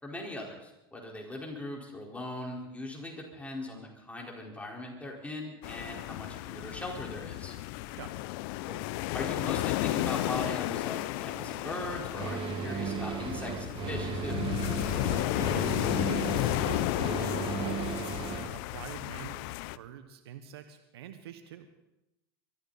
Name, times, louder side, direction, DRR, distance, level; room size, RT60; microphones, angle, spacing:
voice 1, 0.0-7.5 8.7-8.8 9.1-14.5, left 1 dB, 10° left, -1 dB, 4.5 m, -40 dB
sound 1, 5.6-19.8, left 17 dB, 65° left, 0.6 m, -33 dB
sound 2, 12.1-18.5, right 6 dB, 40° right, 1.8 m, -35 dB
voice 2, 15.0-21.7, right 9 dB, 85° right, 8 dB, 1.2 m, -46 dB
24.0 x 14.0 x 4.2 m, 0.90 s
hypercardioid pair, 95°, 13 cm